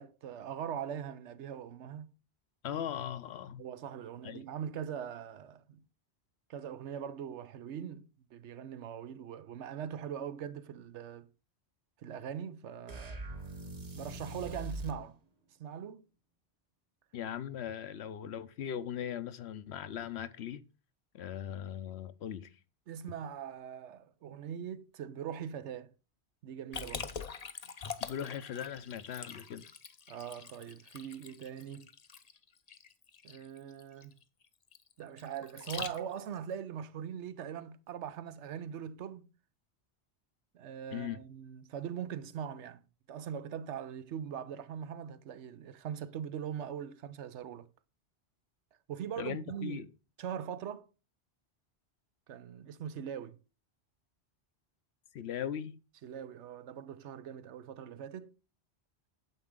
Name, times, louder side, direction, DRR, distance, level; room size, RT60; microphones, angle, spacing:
voice 1, 0.0-2.1 3.6-5.8 6.5-11.3 12.0-13.2 13.9-15.2 15.6-16.1 22.9-25.9 26.4-27.1 30.1-31.9 33.2-34.1 35.0-39.3 40.5-47.7 48.9-49.9 50.2-50.9 52.3-53.4 56.0-58.3, right 8 dB, 90° right, 1.0 m, -41 dB
voice 2, 2.6-3.6 4.2-4.4 17.1-20.6 21.1-22.5 28.0-29.7 40.9-41.2 49.2-49.9 55.1-55.8, left 9 dB, 70° left, 0.9 m, -39 dB
sound 1, 12.9-15.0, right 2 dB, 35° right, 1.1 m, -42 dB
Liquid, 26.7-36.4, left 6 dB, 40° left, 0.7 m, -44 dB
9.4 x 7.3 x 3.7 m
omnidirectional pair, 1.1 m